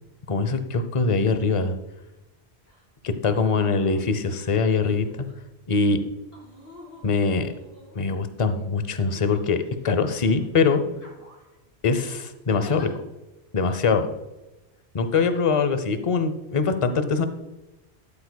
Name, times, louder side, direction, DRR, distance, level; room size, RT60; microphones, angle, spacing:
voice 1, 0.3-1.8 3.0-5.1 5.7-6.0 7.0-7.5 7.9-10.8 11.8-12.9 13.5-14.1 14.9-17.2, left 4 dB, 35° left, 10 dB, 0.6 m, -23 dB
sound 1, 2.6-2.8 3.3-4.0 4.8-5.3 6.3-8.4 9.1-9.9 10.3-10.5 11.0-11.6 12.5-12.9 13.6-13.8, left 2 dB, 65° left, 2.8 m, -48 dB
13.0 x 8.4 x 2.2 m, 1.0 s
omnidirectional pair, 1.1 m